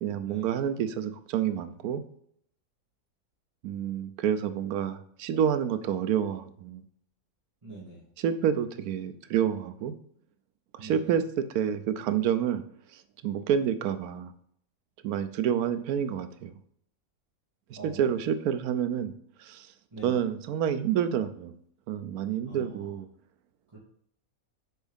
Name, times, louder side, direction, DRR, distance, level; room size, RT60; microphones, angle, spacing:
voice 1, 0.0-2.0 3.6-6.8 8.2-10.0 10.7-12.6 12.9-14.3 15.0-16.5 17.7-19.1 19.4-19.7 20.0-21.5 21.9-23.1, right 9 dB, 80° right, 11 dB, 1.1 m, -28 dB
voice 2, 7.6-8.0 10.8-11.1 17.7-18.1 19.9-20.2 22.5-22.9 23.7-23.8, right 3 dB, 20° right, -11 dB, 2.1 m, -45 dB
6.3 x 4.5 x 3.4 m, 0.67 s
omnidirectional pair, 1.5 m